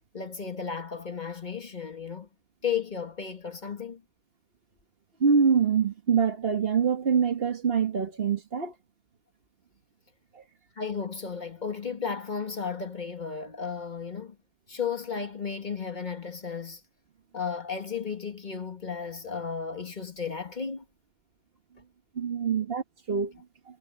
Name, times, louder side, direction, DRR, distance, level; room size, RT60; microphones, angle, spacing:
voice 1, 0.1-2.3 2.6-4.0 10.8-14.4 14.7-16.8 17.3-20.8, left 6 dB, 40° left, 1.7 m, -34 dB
voice 2, 5.2-8.7 10.3-10.4 22.1-23.3, right 6 dB, 55° right, 1.5 m, -25 dB
omnidirectional pair, 1.2 m